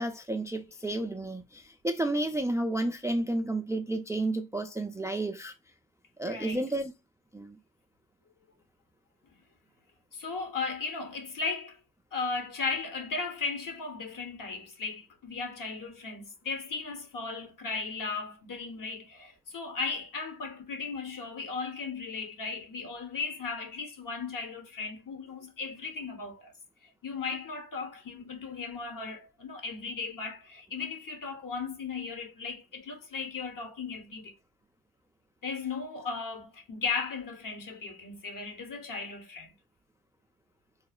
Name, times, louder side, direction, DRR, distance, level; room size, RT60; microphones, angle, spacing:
voice 1, 0.0-5.5 6.2-6.9 7.3-7.6, right 1 dB, 10° right, 0.3 m, -31 dB
voice 2, 6.2-6.6 10.1-11.8 12.1-26.5 26.8-34.3 35.4-39.5, left 4 dB, 50° left, 1.0 m, -36 dB
3.1 x 2.0 x 2.2 m
supercardioid pair, 55°, 40 cm